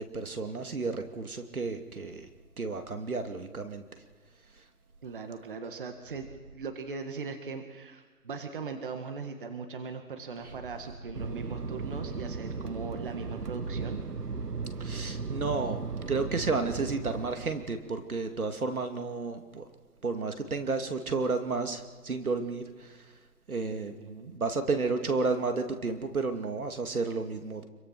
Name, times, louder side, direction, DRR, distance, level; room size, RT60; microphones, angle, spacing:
voice 1, 0.0-2.3 2.6-3.8 14.8-19.7 20.0-23.1 23.5-24.0 24.3-27.6, right 4 dB, 65° right, 6 dB, 2.7 m, -32 dB
voice 2, 5.0-6.3 6.5-14.0 24.0-24.3, right 5 dB, 35° right, 6 dB, 1.8 m, -39 dB
Fixed-wing aircraft airplane, 11.1-17.8, right 4 dB, 85° right, 1.4 m, -36 dB
26.5 x 23.5 x 6.0 m, 1.4 s
figure-of-eight pair, 160°, 46 cm